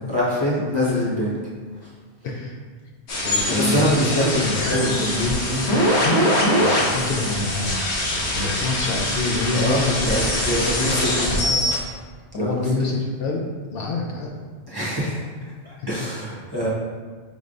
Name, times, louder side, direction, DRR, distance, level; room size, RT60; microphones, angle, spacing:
voice 1, 0.1-1.4 1.8-1.9 3.5-4.4 9.5-11.3 12.3-13.0 14.7-15.2 15.6-16.7, equal, 25° right, -8 dB, 0.8 m, -24 dB
sound 1, 3.1-11.7, left 1 dB, 85° left, 1.2 m, -23 dB
voice 2, 3.2-5.7 6.6-7.9 8.3-10.1 10.5-11.8 12.3-13.4 13.7-14.3 15.8-15.9, left 2 dB, 65° left, -1 dB, 0.7 m, -26 dB
5.3 x 3.2 x 2.5 m, 1.5 s
omnidirectional pair, 1.1 m